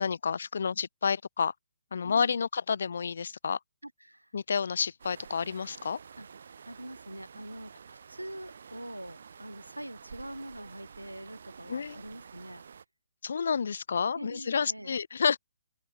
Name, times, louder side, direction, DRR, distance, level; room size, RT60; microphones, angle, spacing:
voice 1, 0.0-1.5 1.9-3.6 4.3-6.0 11.7-12.0 13.2-15.4, left 6 dB, 55° left, 0.3 m, -30 dB
voice 2, 2.0-2.4 3.8-4.3 6.2-6.3 6.6-12.6 14.1-14.9, right 1 dB, 85° right, 1.0 m, -44 dB
sound 1, 5.0-12.8, right 6 dB, 55° right, 0.5 m, -50 dB
open air
figure-of-eight pair, 130°, 0 cm